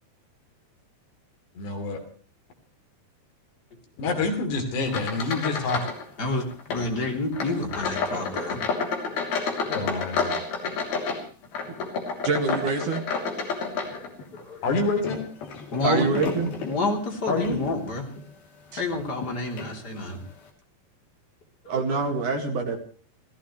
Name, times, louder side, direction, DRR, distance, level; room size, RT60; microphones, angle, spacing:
voice 1, 1.6-2.0 4.0-5.9 9.7-10.4 14.6-15.2 17.3-17.6, left 3 dB, 80° left, 4 dB, 5.3 m, -27 dB
sound 1, 4.9-6.0 6.3-6.9 7.3-14.4 14.9-16.8 17.4-17.6 18.2-18.3 19.2-19.3 19.6-19.7, left 4 dB, 65° left, 4.8 m, -30 dB
voice 2, 6.2-8.6 10.5-10.7 13.9-14.6 15.7-16.1 16.7-18.1 18.8-20.2 21.6-21.8, left 2 dB, 25° left, 1 dB, 3.4 m, -29 dB
voice 3, 12.2-13.0 15.8-16.5 18.7-18.8 21.7-22.8, right 4 dB, 55° right, 4 dB, 3.1 m, -25 dB
29.5 x 15.5 x 3.2 m, 0.41 s
omnidirectional pair, 4.8 m